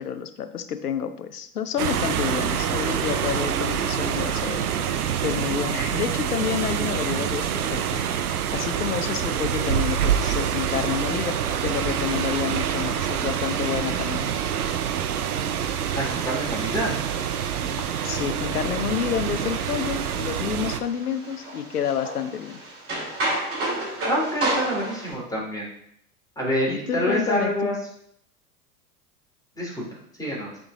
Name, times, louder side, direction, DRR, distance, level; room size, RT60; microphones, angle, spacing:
voice 1, 0.0-4.6 5.2-8.0 8.5-14.3 18.0-22.6 26.7-27.7, left 8 dB, 85° left, 10 dB, 0.7 m, -29 dB
sound 1, 1.8-20.8, right 8 dB, 80° right, 0.6 m, -26 dB
sound 2, 15.7-25.1, right 1 dB, 30° right, 2.6 m, -33 dB
voice 2, 15.9-16.9 24.1-25.7 26.4-27.7 29.6-29.8 30.2-30.6, equal, 10° left, -4 dB, 2.6 m, -27 dB
8.3 x 3.9 x 3.6 m, 0.72 s
figure-of-eight pair, 85°, 45 cm